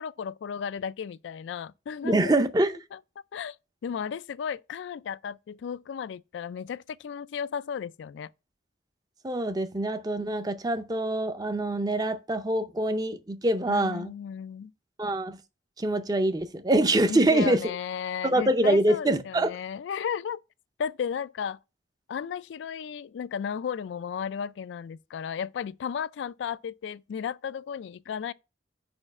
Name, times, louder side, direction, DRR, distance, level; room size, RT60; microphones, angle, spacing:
voice 1, 0.0-2.4 2.7-3.0 3.3-3.6 3.8-8.3 13.7-14.7 17.1-20.4 20.8-21.6 22.1-28.3, left 7 dB, 85° left, 0.3 m, -34 dB
voice 2, 2.0-2.8 9.2-14.1 15.0-15.4 15.8-17.6 18.2-19.5, right 1 dB, 20° right, 0.5 m, -25 dB
4.9 x 4.4 x 5.8 m
head